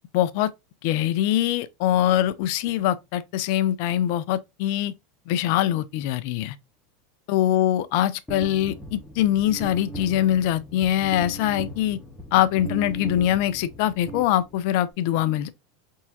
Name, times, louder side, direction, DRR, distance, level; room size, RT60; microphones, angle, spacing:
voice 1, 0.1-0.5 0.8-4.9 5.3-6.5 7.3-12.0 12.3-15.5, left 12 dB, 65° left, 0.6 m, -23 dB
sound 1, 8.3-14.9, right 1 dB, 15° left, 1.3 m, -38 dB
4.2 x 3.7 x 2.7 m
hypercardioid pair, 100°, 0 cm